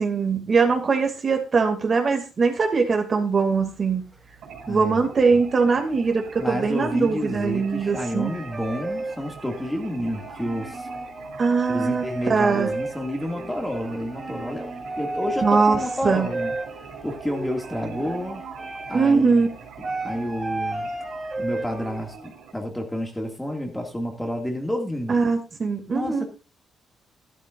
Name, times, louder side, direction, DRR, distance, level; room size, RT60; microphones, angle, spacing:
voice 1, 0.0-4.0 4.7-8.4 11.4-12.7 15.4-16.3 18.9-19.5 25.1-26.3, right 4 dB, 40° right, 4 dB, 2.4 m, -21 dB
sound 1, 3.6-4.9 5.2-5.9 6.3-22.2, right 2 dB, 20° right, 3.3 m, -34 dB
sound 2, 4.4-22.5, right 6 dB, 80° right, 3.5 m, -43 dB
voice 2, 4.7-5.1 6.4-10.9 11.7-14.7 15.0-16.5 17.0-18.4 18.9-19.5 20.0-20.9 21.4-22.2 22.5-25.1 25.9-26.3, equal, 5° left, 2 dB, 2.2 m, -29 dB
13.5 x 12.0 x 2.6 m, 0.30 s
cardioid pair, 110°, 0 cm